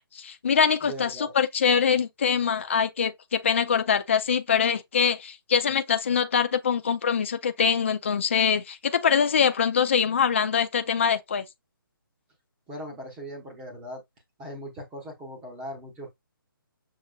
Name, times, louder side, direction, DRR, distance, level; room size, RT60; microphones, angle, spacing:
voice 1, 0.1-11.4, left 7 dB, 35° left, 0.4 m, -24 dB
voice 2, 0.8-1.3 12.7-14.0 14.4-16.1, equal, 10° right, 0.9 m, -39 dB
6.5 x 3.0 x 2.2 m
hypercardioid pair, 170°, 12 cm